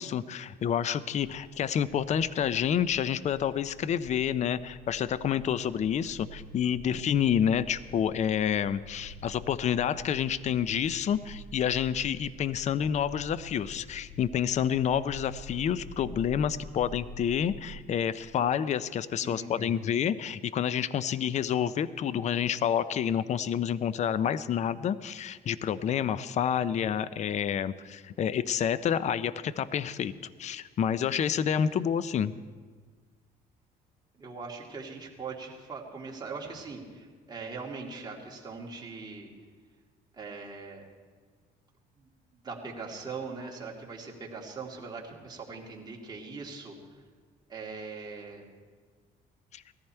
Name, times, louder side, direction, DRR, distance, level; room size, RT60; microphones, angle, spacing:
voice 1, 0.0-30.1 30.4-32.3 49.5-49.6, left 8 dB, 45° left, 16 dB, 0.5 m, -28 dB
sound 1, 8.5-17.7, left 1 dB, 65° left, 3.1 m, -47 dB
voice 2, 19.2-19.8 34.2-39.3 40.1-40.8 42.0-42.1 42.4-46.7 47.5-48.4, right 4 dB, 25° right, -2 dB, 2.6 m, -41 dB
18.0 x 14.0 x 4.5 m, 1.5 s
cardioid pair, 110°, 17 cm